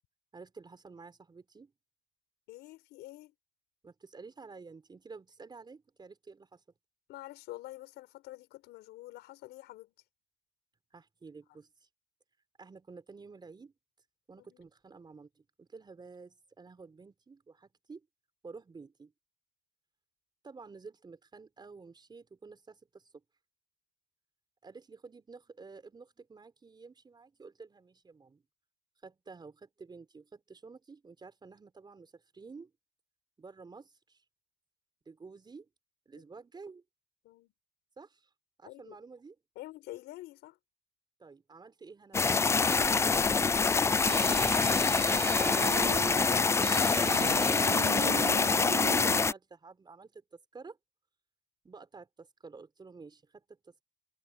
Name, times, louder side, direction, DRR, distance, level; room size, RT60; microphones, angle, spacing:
voice 1, 0.3-1.7 3.8-6.6 10.9-11.9 12.6-13.7 14.3-18.1 18.4-19.1 20.4-23.2 24.6-28.4 29.0-32.7 33.4-34.2 35.0-35.7 36.0-36.8 38.0-38.3 38.6-39.4 41.2-42.4 45.4-46.3 46.9-50.8 51.6-53.8, right 4 dB, 25° right, 5.0 m, -51 dB
voice 2, 2.5-3.3 7.1-9.9 14.4-14.6 37.2-37.5 38.6-39.0 39.5-40.6, left 17 dB, 85° left, 6.4 m, -47 dB
sound 1, 42.1-49.3, left 4 dB, 15° left, 0.3 m, -26 dB
sound 2, 44.1-49.2, right 17 dB, 65° right, 0.4 m, -39 dB
cardioid pair, 110°, 17 cm